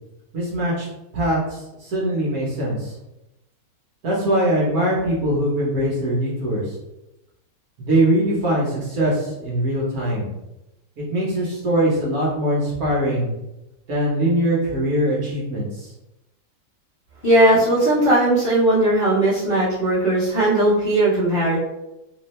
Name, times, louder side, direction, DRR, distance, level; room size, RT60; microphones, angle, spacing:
voice 1, 0.3-0.9 1.1-2.9 4.0-6.8 7.8-10.3 11.0-13.3 13.9-15.9, right 1 dB, 55° right, -5 dB, 1.3 m, -22 dB
voice 2, 17.2-21.6, right 1 dB, 35° left, -9 dB, 1.1 m, -18 dB
3.7 x 2.6 x 3.1 m, 0.93 s
omnidirectional pair, 2.0 m